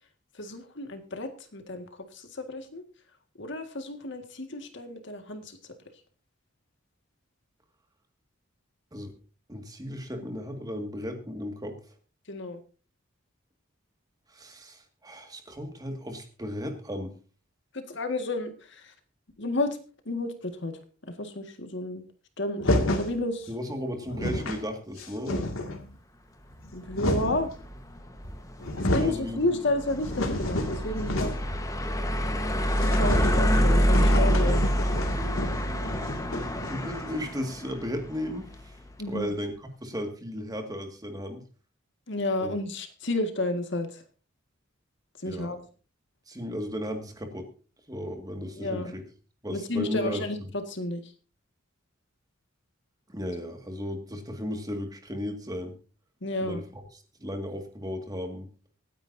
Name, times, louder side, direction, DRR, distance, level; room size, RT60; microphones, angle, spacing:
voice 1, 0.3-2.8 3.4-5.8 12.3-12.6 17.7-18.9 19.4-19.8 20.1-20.8 21.1-22.0 22.4-23.5 26.7-27.5 28.8-31.4 32.8-34.6 39.0-39.3 42.1-44.0 45.2-45.7 48.6-48.9 49.5-51.1 56.2-56.6, left 2 dB, 60° left, 7 dB, 1.8 m, -31 dB
voice 2, 9.5-11.8 14.3-17.1 23.5-25.5 28.9-29.4 34.4-34.6 35.1-35.3 36.7-38.8 39.1-39.5 39.8-41.4 42.4-42.6 45.3-45.5 46.3-47.5 47.9-49.0 49.4-50.2 53.1-55.7 56.4-56.8 57.2-58.5, equal, 20° right, 4 dB, 2.0 m, -35 dB
sound 1, 22.6-23.1 23.8-23.9 24.0-24.6 25.0-25.8 26.5-27.5 28.2-28.3 28.6-29.2 29.6-31.6 31.8-31.9 32.2-32.3 32.7-37.2, left 1 dB, 85° left, 2.2 m, -30 dB
sound 2, 26.8-38.9, equal, 15° left, 1.2 m, -27 dB
25.0 x 9.7 x 2.7 m, 0.36 s
head